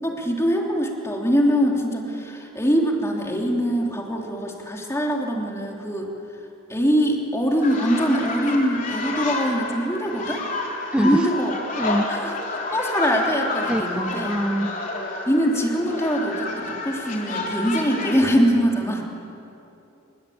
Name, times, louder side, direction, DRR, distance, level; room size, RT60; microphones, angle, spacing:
voice 1, 0.0-6.1 6.7-10.4 11.0-11.5 12.1-12.3 12.7-14.3 15.3-19.0, equal, 15° left, 0 dB, 3.3 m, -23 dB
sound 1, 7.6-18.2, left 2 dB, 40° left, 3.7 m, -29 dB
voice 2, 10.9-11.3 11.8-12.1 13.7-14.7, equal, 5° right, 7 dB, 0.6 m, -24 dB
29.5 x 21.0 x 8.8 m, 2.9 s
head